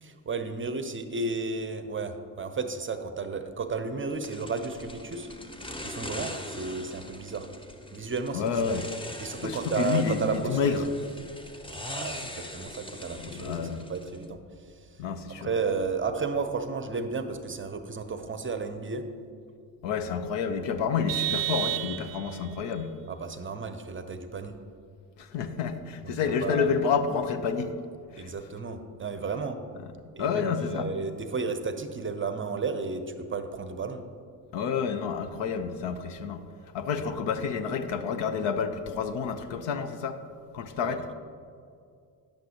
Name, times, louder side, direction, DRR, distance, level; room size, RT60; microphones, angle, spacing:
voice 1, 0.0-5.3 5.8-7.5 7.9-8.6 9.2-10.8 11.9-14.4 14.8-15.0 15.4-19.0 23.1-24.5 26.0-26.7 28.2-29.6 30.2-33.0 33.3-34.0 40.8-41.1, right 4 dB, 25° right, 8 dB, 0.7 m, -33 dB
sound 1, 4.2-14.3, left 1 dB, 10° left, 0.7 m, -41 dB
voice 2, 8.3-8.9 9.4-10.9 13.1-13.8 15.0-15.5 19.8-22.9 25.2-27.7 28.1-28.3 30.2-30.9 34.5-36.4 36.7-40.2 40.5-41.1, left 6 dB, 60° left, 9 dB, 0.7 m, -29 dB
Vehicle horn car horn honking, 21.1-22.5, right 14 dB, 75° right, 0.6 m, -30 dB
10.5 x 7.6 x 2.9 m, 2.3 s
hypercardioid pair, 55°, 49 cm